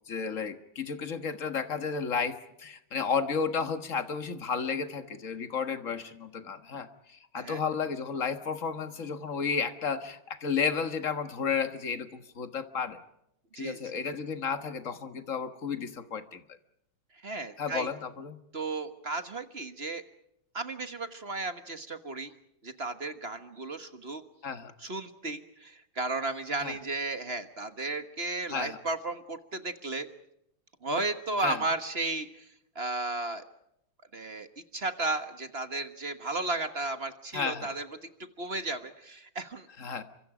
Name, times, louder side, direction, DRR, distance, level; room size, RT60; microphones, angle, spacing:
voice 1, 0.1-13.0 13.6-16.4 17.6-18.4 24.4-24.7 26.6-26.8 28.5-28.8 31.4-31.6 37.3-37.8 39.8-40.0, left 5 dB, 40° left, 9 dB, 1.7 m, -32 dB
voice 2, 17.2-17.9 18.5-20.0 20.5-22.3 22.6-24.2 24.8-30.1 30.8-32.4 32.7-33.4 34.1-34.5 34.7-37.9 38.4-39.7, right 2 dB, 35° right, 9 dB, 1.4 m, -34 dB
30.0 x 25.5 x 5.0 m, 0.79 s
omnidirectional pair, 2.3 m